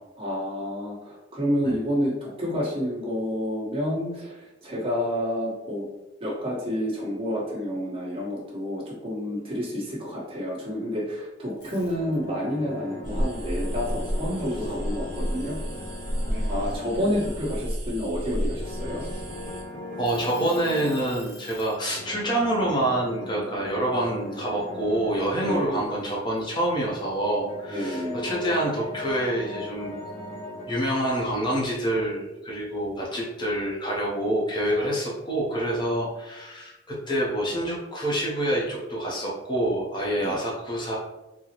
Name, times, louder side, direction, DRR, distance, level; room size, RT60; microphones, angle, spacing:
voice 1, 0.2-5.9 6.2-15.6 16.5-19.0 25.4-25.8 27.7-28.3 40.1-40.4, equal, 30° right, -6 dB, 1.1 m, -29 dB
Kitchen Timer, 11.6-12.5 12.9-14.7 15.2-15.4 15.8-17.7 18.4-19.5 20.0-21.8, left 1 dB, 65° left, 1.0 m, -49 dB
sound 1, 11.6-17.8 18.6-21.1 21.9-25.7 27.0-30.7, left 1 dB, 45° left, 0.9 m, -39 dB
sound 2, 13.0-19.6, equal, 60° right, 1.0 m, -31 dB
voice 2, 16.3-16.8 20.0-29.9 30.7-41.0, right 1 dB, 25° left, -4 dB, 0.6 m, -27 dB
3.8 x 2.0 x 2.9 m, 1.0 s
head